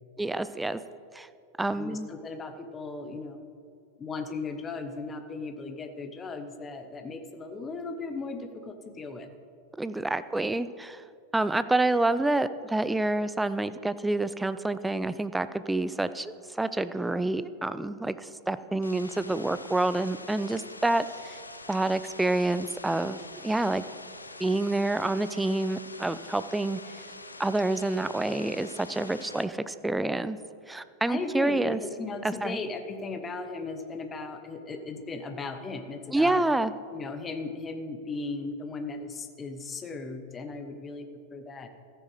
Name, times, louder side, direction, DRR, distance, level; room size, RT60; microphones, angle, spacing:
voice 1, 0.2-0.8 1.1-1.3 1.6-2.1 9.8-11.0 11.3-21.4 21.7-23.8 24.4-26.8 27.4-30.4 30.7-31.8 32.2-32.6 36.1-36.7, right 2 dB, 5° right, 13 dB, 0.4 m, -28 dB
voice 2, 1.7-3.5 4.0-9.3 31.1-36.4 36.9-41.7, left 3 dB, 20° left, 8 dB, 0.9 m, -37 dB
sound 1, 18.8-29.5, left 2 dB, 80° left, 0.5 m, -45 dB
14.0 x 10.0 x 3.2 m, 2.3 s
figure-of-eight pair, 90°, 0 cm